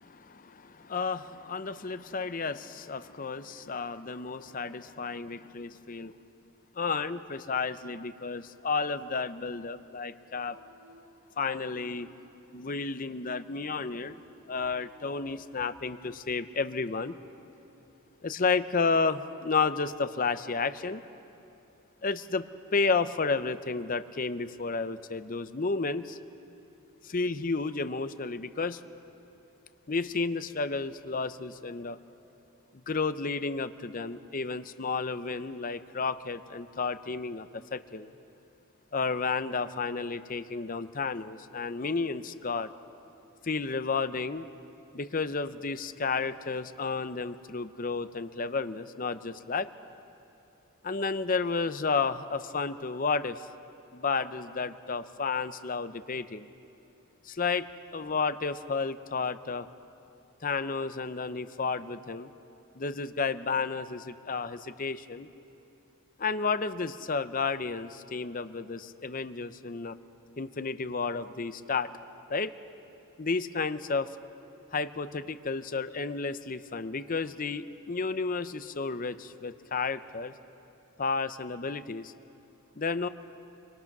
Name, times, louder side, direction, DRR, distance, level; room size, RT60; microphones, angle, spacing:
voice 1, 0.0-6.1 6.8-10.6 11.4-12.1 12.5-14.2 14.5-17.2 18.2-21.0 22.0-22.5 22.7-26.2 27.0-28.8 29.9-32.0 32.7-38.1 38.9-42.7 43.4-44.5 44.9-49.7 50.8-53.5 53.9-56.5 57.2-59.7 60.4-62.3 62.8-65.3 66.2-70.0 70.4-71.9 72.3-72.5 73.2-74.2 74.7-80.3 81.0-82.1 82.8-83.1, left 4 dB, 40° left, 12 dB, 0.7 m, -32 dB
Female singing, 10.3-18.0, equal, 55° right, 7.5 m, -59 dB
25.0 x 24.0 x 6.0 m, 2.9 s
head